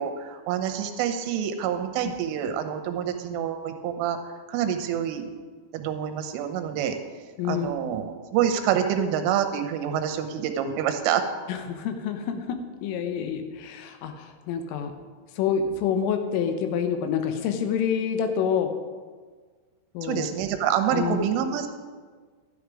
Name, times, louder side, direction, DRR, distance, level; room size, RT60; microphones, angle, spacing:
voice 1, 0.0-4.2 4.5-5.3 5.7-7.0 7.4-11.2 20.0-21.7, right 9 dB, 80° right, 6 dB, 3.4 m, -27 dB
voice 2, 7.4-7.7 11.5-14.9 15.4-18.7 20.0-20.3 20.9-21.3, left 7 dB, 85° left, 7 dB, 3.6 m, -27 dB
12.5 x 9.7 x 4.9 m, 1.5 s
omnidirectional pair, 5.7 m